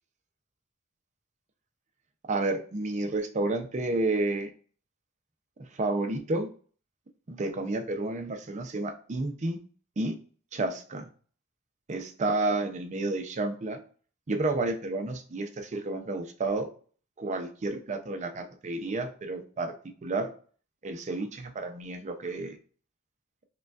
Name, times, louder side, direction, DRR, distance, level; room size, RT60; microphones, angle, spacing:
voice 1, 2.3-4.5 5.8-6.5 7.3-9.6 10.0-10.1 10.5-11.1 11.9-13.8 14.3-16.7 17.2-20.3 20.8-22.6, right 2 dB, 35° right, 5 dB, 0.5 m, -31 dB
5.0 x 2.3 x 2.4 m, 0.42 s
head